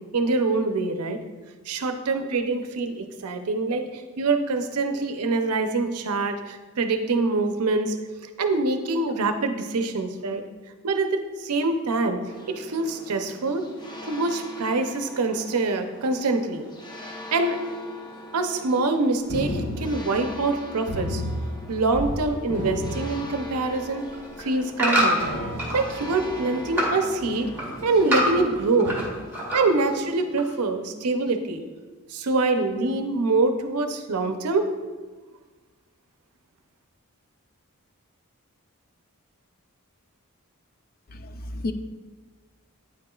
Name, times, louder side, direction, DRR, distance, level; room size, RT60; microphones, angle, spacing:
voice 1, 0.1-1.2 1.7-8.0 8.4-10.4 10.8-12.2 12.5-13.7 14.0-16.6 17.3-17.6 18.3-21.2 21.7-24.1 24.4-25.2 25.7-29.2 29.5-31.6 32.1-34.7, right 3 dB, 80° right, 7 dB, 0.6 m, -25 dB
sound 1, 12.3-30.2, left 1 dB, 20° left, 0.7 m, -42 dB
sound 2, 19.3-20.5 20.9-22.2 22.4-23.7 24.3-24.4 25.2-26.0, equal, 90° left, 1.5 m, -31 dB
sound 3, 24.0-25.8 26.2-27.0 27.3-29.1 29.3-29.9 30.4-30.5, equal, 10° right, 1.9 m, -25 dB
voice 2, 41.1-41.7, left 2 dB, 40° left, 8 dB, 0.4 m, -32 dB
9.2 x 6.7 x 2.4 m, 1.3 s
head